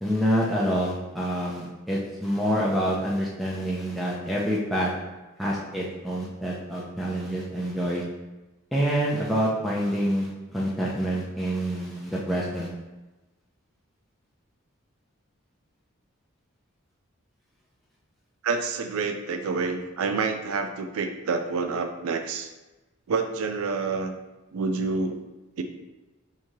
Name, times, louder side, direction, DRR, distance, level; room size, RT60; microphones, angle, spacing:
voice 1, 0.0-4.9 5.4-8.0 8.7-12.7, equal, ahead, -5 dB, 0.4 m, -27 dB
voice 2, 18.4-22.5 23.1-24.1 24.5-25.2 25.6-25.7, right 4 dB, 80° right, 6 dB, 0.4 m, -28 dB
3.6 x 3.1 x 2.7 m, 1.1 s
head